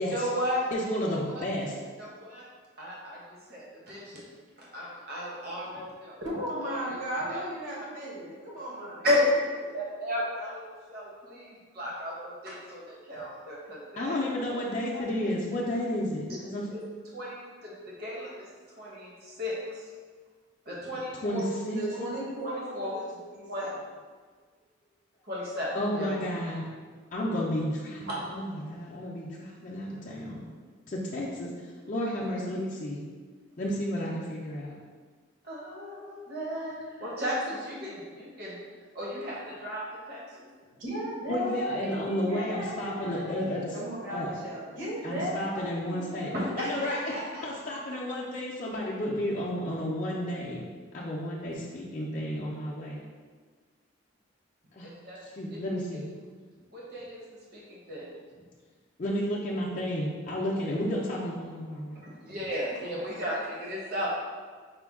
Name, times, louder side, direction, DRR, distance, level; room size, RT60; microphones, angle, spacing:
voice 1, 0.1-0.7 1.1-1.2 2.0-2.5 2.8-3.2 3.5-4.2 4.6-6.2 6.6-7.0 7.3-7.4 9.0-9.4 9.7-10.6 10.9-14.2 14.9-15.0 16.3-16.4 16.7-16.8 17.1-18.5 18.8-19.8 20.7-21.4 22.4-22.9 23.5-23.6 25.2-26.1 28.1-28.2 35.4-38.6 38.9-40.5 46.3-46.7 47.1-47.5 54.8-55.2 55.5-55.6 56.7-57.2 57.5-58.1 62.0-64.1, left 1 dB, 50° right, -5 dB, 0.8 m, -34 dB
voice 2, 0.7-1.8 14.0-16.7 21.2-21.8 25.7-26.7 27.1-30.4 30.9-31.5 31.9-33.0 33.6-34.7 41.3-43.8 44.1-44.3 45.0-46.3 46.6-50.6 50.9-53.0 54.7-54.9 55.2-56.0 59.0-62.0, left 1 dB, 40° left, -5 dB, 0.5 m, -32 dB
voice 3, 6.2-9.0 21.7-23.7 25.9-26.1 40.7-43.3 43.7-46.6, equal, 75° right, -5 dB, 1.2 m, -36 dB
5.0 x 2.2 x 3.5 m, 1.5 s
head